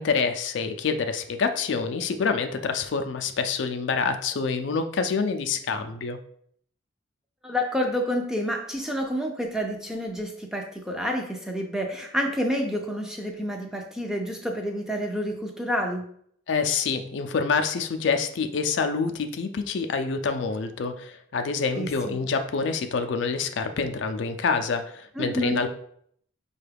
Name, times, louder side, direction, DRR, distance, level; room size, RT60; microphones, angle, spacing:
voice 1, 0.0-6.2 16.5-25.7, left 5 dB, 65° left, 7 dB, 0.4 m, -27 dB
voice 2, 7.4-16.0 21.8-22.3 25.2-25.6, equal, 5° right, 2 dB, 0.4 m, -29 dB
5.5 x 2.3 x 3.3 m, 0.65 s
head